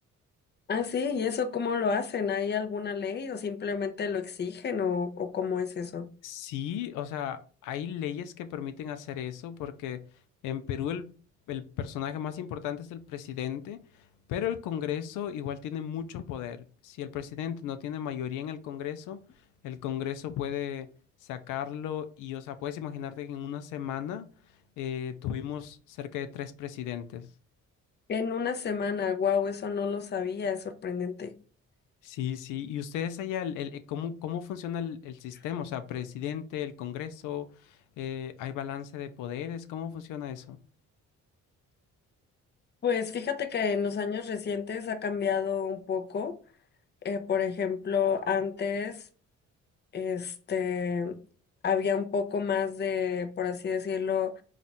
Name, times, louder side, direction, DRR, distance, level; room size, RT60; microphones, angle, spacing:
voice 1, 0.7-6.1 28.1-31.3 42.8-46.3 47.0-49.1 49.9-51.2 51.6-54.4, left 6 dB, 35° left, 0.6 m, -30 dB
voice 2, 6.2-10.0 10.4-11.1 11.5-19.2 19.6-20.9 21.2-24.3 24.8-27.3 32.0-40.6, left 9 dB, 90° left, 0.5 m, -35 dB
3.6 x 2.4 x 4.0 m
cardioid pair, 90°, 30 cm